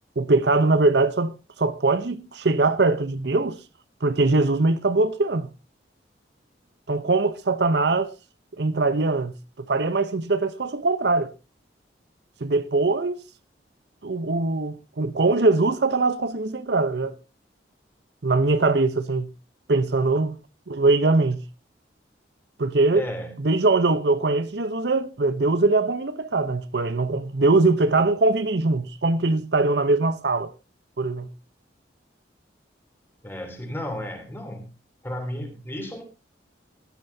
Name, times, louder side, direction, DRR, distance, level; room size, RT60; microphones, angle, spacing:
voice 1, 0.2-3.6 4.0-5.5 6.9-8.1 8.6-11.3 12.4-13.2 14.0-17.2 18.2-19.3 19.7-20.3 20.7-21.4 22.6-23.0 23.4-30.5 31.0-31.3, right 3 dB, 65° right, 0.8 m, -22 dB
voice 2, 22.9-23.4 33.2-34.7 35.0-36.0, equal, 10° left, 3.1 m, -33 dB
16.0 x 12.5 x 2.7 m
head